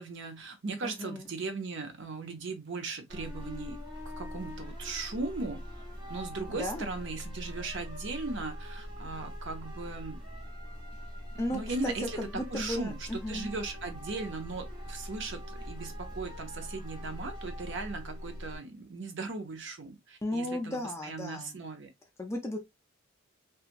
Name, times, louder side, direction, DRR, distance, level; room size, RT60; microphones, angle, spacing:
voice 1, 0.0-3.8 4.0-5.8 6.1-10.2 11.5-12.2 12.5-21.9, right 3 dB, 55° right, 0.6 m, -38 dB
voice 2, 0.8-1.3 6.5-6.9 11.4-13.5 20.2-21.6 22.2-22.6, left 1 dB, 10° left, 0.4 m, -35 dB
sound 1, 3.1-18.6, equal, 20° right, 0.9 m, -42 dB
2.9 x 2.3 x 2.5 m
head